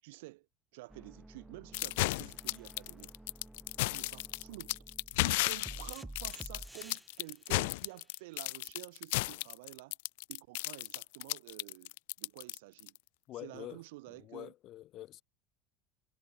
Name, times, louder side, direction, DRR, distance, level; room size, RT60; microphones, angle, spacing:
voice 1, 0.0-0.5 0.7-3.1 3.8-4.8 5.2-10.0 10.3-13.0 13.3-14.5, right 21 dB, 90° right, 7.4 m, -50 dB
sound 1, 0.9-7.2 8.7-8.8, right 1 dB, 5° right, 7.5 m, -51 dB
sound 2, 1.7-13.0, left 23 dB, 85° left, 0.5 m, -34 dB
voice 2, 13.3-13.8 14.1-15.2, left 14 dB, 45° left, 1.6 m, -46 dB
cardioid pair, 150°, 0 cm